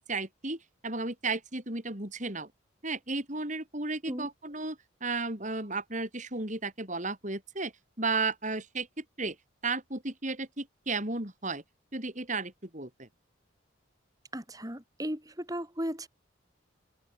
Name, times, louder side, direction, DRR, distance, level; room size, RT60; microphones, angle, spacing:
voice 1, 0.0-2.5 2.8-7.7 8.0-9.4 9.6-11.6 11.9-13.1, right 3 dB, 35° right, 4.0 m, -34 dB
voice 2, 14.3-16.1, equal, 15° right, 4.9 m, -36 dB
open air
head